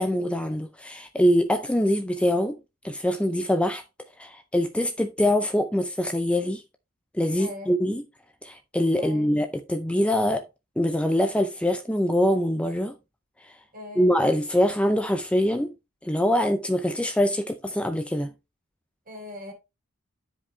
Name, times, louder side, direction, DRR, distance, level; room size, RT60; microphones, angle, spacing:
voice 1, 0.0-2.6 2.8-3.8 4.2-6.6 7.1-8.0 8.4-10.4 10.8-12.9 14.0-15.7 16.0-18.3, left 1 dB, 5° left, 0.5 m, -24 dB
voice 2, 7.4-7.7 9.0-9.3 13.7-14.1 19.1-19.5, left 2 dB, 40° right, 2.8 m, -40 dB
9.8 x 5.0 x 3.1 m
head